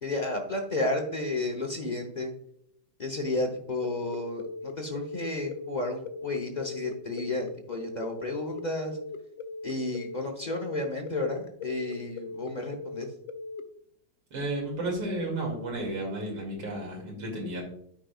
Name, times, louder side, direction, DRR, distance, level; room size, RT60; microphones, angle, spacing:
voice 1, 0.0-2.3 3.0-8.9 9.6-13.1, left 2 dB, 45° left, 2 dB, 0.5 m, -32 dB
sound 1, 3.8-13.6, left 4 dB, 75° left, 1.3 m, -39 dB
voice 2, 14.3-17.6, right 1 dB, 90° right, -1 dB, 3.3 m, -32 dB
13.5 x 5.2 x 2.4 m, 0.69 s
omnidirectional pair, 2.3 m